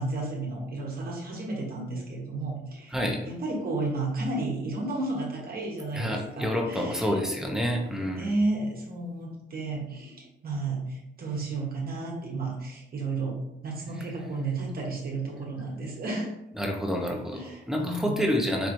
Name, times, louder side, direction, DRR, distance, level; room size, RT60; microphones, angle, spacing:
voice 1, 0.0-3.0 3.2-7.2 8.1-16.3 17.3-18.2, right 2 dB, 50° right, -2 dB, 1.1 m, -32 dB
voice 2, 2.9-3.2 5.9-8.3 16.5-18.7, equal, 5° right, 1 dB, 0.8 m, -28 dB
4.4 x 3.0 x 2.6 m, 0.83 s
cardioid pair, 90°, 20 cm